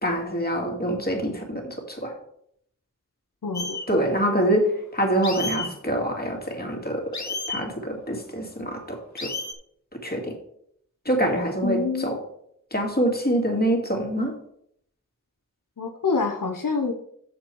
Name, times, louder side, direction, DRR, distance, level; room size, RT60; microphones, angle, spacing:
voice 1, 0.0-2.1 3.9-7.0 7.5-9.3 10.0-10.4 11.1-12.2 12.7-14.3, right 1 dB, 30° left, 1 dB, 2.3 m, -25 dB
voice 2, 3.4-3.8 11.6-12.2 15.8-16.9, left 4 dB, 80° left, 3 dB, 0.8 m, -26 dB
sound 1, 3.5-3.9 5.2-5.7 7.1-7.6 9.2-9.5, left 3 dB, 60° left, 1.1 m, -31 dB
7.0 x 6.9 x 4.6 m, 0.70 s
wide cardioid pair, 50°, 32 cm